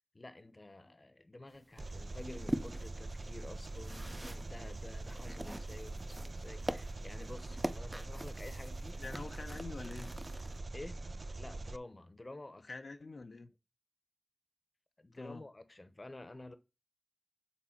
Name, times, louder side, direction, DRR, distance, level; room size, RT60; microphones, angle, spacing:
voice 1, 0.1-9.0 10.7-11.0 11.4-12.8 15.0-16.6, left 2 dB, 40° left, 0.9 m, -50 dB
sound 1, 1.5-10.6, right 1 dB, 15° right, 0.5 m, -44 dB
Engine, 1.8-11.8, right 2 dB, 60° right, 0.4 m, -43 dB
voice 2, 9.0-10.1 12.7-13.5 15.2-15.4, left 3 dB, 85° left, 0.7 m, -45 dB
7.1 x 4.0 x 5.8 m
wide cardioid pair, 55°, 0 cm